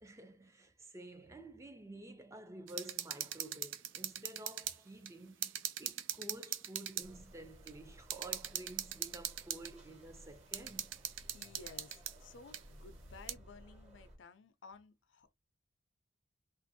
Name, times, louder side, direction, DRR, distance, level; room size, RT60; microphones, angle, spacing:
voice 1, 0.0-10.9, right 1 dB, 15° right, 0.5 m, -51 dB
sound 1, 2.7-4.8 5.1-5.2 5.4-7.1 7.7-7.8 8.1-9.7 10.5-12.1 12.5-12.6 13.3-13.4, right 11 dB, 80° right, 0.4 m, -40 dB
sound 2, 7.0-14.2, equal, 35° right, 1.3 m, -58 dB
voice 2, 11.3-15.3, left 4 dB, 70° left, 0.5 m, -55 dB
3.0 x 2.5 x 2.6 m
head